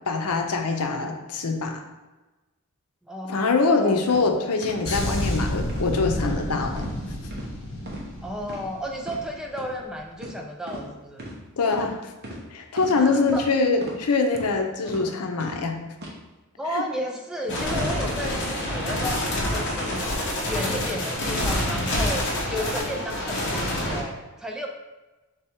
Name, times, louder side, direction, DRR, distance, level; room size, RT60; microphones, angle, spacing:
voice 1, 0.1-1.8 3.3-6.9 11.6-12.0 12.5-15.8 16.7-16.8, left 4 dB, 90° left, 4 dB, 0.6 m, -24 dB
voice 2, 3.0-4.0 8.2-11.3 13.0-13.4 14.8-15.1 16.6-20.1 20.5-24.7, equal, 5° right, 1 dB, 0.3 m, -33 dB
sound 1, 4.1-4.2 4.6-4.8 5.2-5.3 5.7-5.9 6.2-6.4 6.8-6.9 7.3-7.5 7.9-8.1 8.4-8.6 9.0-9.2 9.6-9.7 10.2-10.4 10.7-10.8 11.2-11.3 11.7-11.9 12.2-12.4 12.8-12.9 13.3-13.4 13.8-14.0 14.3-14.5 14.9-15.0 15.4-15.6 16.0-16.1, equal, 45° right, 0.9 m, -37 dB
sound 2, 4.8-9.4 9.7-10.0, left 1 dB, 75° left, 1.1 m, -30 dB
sound 3, 17.5-24.0, left 1 dB, 50° left, 0.9 m, -27 dB
3.5 x 3.4 x 4.4 m, 1.1 s
head